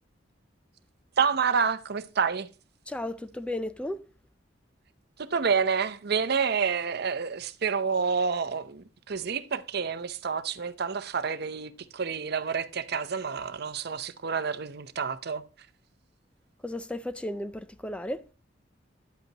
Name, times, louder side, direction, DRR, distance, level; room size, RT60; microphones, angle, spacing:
voice 1, 1.2-2.5 5.3-15.4, right 6 dB, 60° right, 0.7 m, -28 dB
voice 2, 2.9-4.0 16.6-18.2, left 1 dB, 5° left, 0.4 m, -34 dB
10.5 x 8.1 x 2.9 m
head